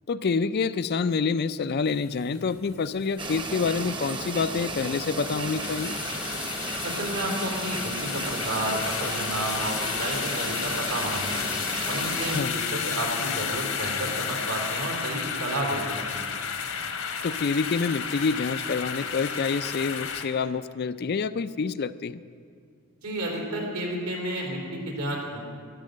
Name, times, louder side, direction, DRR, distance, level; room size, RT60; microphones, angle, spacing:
voice 1, 0.1-6.0 12.3-12.5 17.2-22.2, left 5 dB, 45° left, 14 dB, 0.4 m, -27 dB
sound 1, 1.9-20.3, left 7 dB, 70° left, 1.3 m, -32 dB
sound 2, 3.2-12.4, right 2 dB, 20° right, 0.9 m, -34 dB
voice 2, 6.8-11.5 11.9-15.8 16.1-16.3 23.0-25.4, right 1 dB, 85° right, -1 dB, 3.5 m, -31 dB
12.5 x 11.5 x 7.8 m, 2.2 s
head